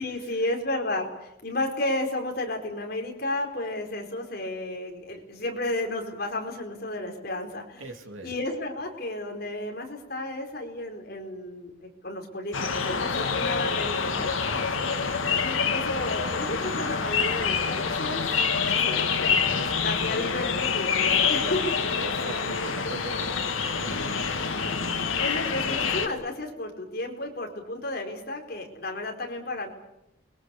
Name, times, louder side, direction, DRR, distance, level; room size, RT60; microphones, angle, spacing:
voice 1, 0.0-7.9 8.2-14.3 15.4-18.2 18.6-19.4 19.8-21.7 25.2-29.7, left 1 dB, 50° left, 2 dB, 4.5 m, -32 dB
voice 2, 7.8-8.3 13.0-13.4 14.1-15.2 18.2-18.3 18.7-18.8 19.5-19.9 21.3-21.6 22.0-24.2, right 2 dB, 90° right, 5 dB, 2.8 m, -43 dB
sound 1, 12.5-26.1, left 5 dB, 85° left, 2.0 m, -26 dB
29.5 x 23.0 x 7.0 m, 0.86 s
head